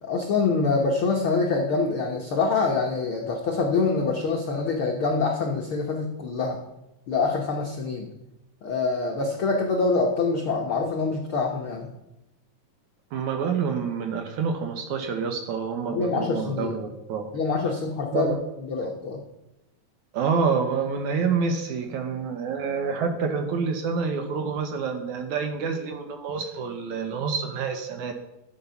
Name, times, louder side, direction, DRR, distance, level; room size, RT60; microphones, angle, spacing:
voice 1, 0.0-6.6 7.1-8.1 8.6-11.9 15.9-16.8 17.3-18.3 18.7-19.2, left 4 dB, 70° left, 1 dB, 1.2 m, -25 dB
voice 2, 13.1-17.3 18.1-18.4 20.1-28.1, right 5 dB, 65° right, 5 dB, 2.1 m, -27 dB
13.0 x 8.1 x 5.7 m, 0.95 s
omnidirectional pair, 4.1 m